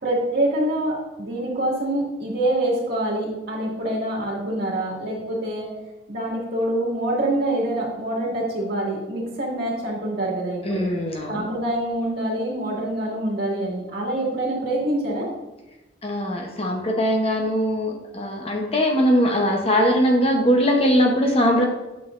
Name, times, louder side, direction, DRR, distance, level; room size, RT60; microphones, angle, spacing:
voice 1, 0.0-5.7 6.1-10.9 11.3-15.3, right 1 dB, 50° right, -3 dB, 2.1 m, -25 dB
voice 2, 10.6-11.5 16.0-21.7, equal, 30° left, 2 dB, 0.8 m, -21 dB
8.9 x 6.2 x 2.5 m, 1.0 s
head